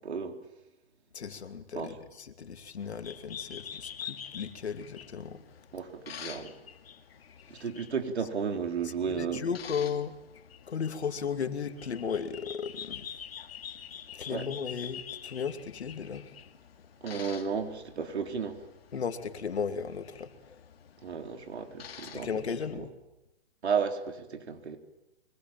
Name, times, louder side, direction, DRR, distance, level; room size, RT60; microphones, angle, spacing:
voice 1, 0.0-0.4 1.7-1.9 5.7-6.6 7.5-9.4 14.3-14.4 17.0-18.7 21.0-22.3 23.6-24.8, right 6 dB, 85° right, 4.0 m, -33 dB
voice 2, 1.1-5.6 7.5-7.7 8.8-10.2 10.7-13.1 14.1-16.3 18.9-20.7 22.1-22.9, left 6 dB, 90° left, 2.7 m, -35 dB
sound 1, 2.8-22.7, left 8 dB, 65° left, 2.4 m, -47 dB
24.5 x 22.5 x 9.1 m
hypercardioid pair, 155°, 32 cm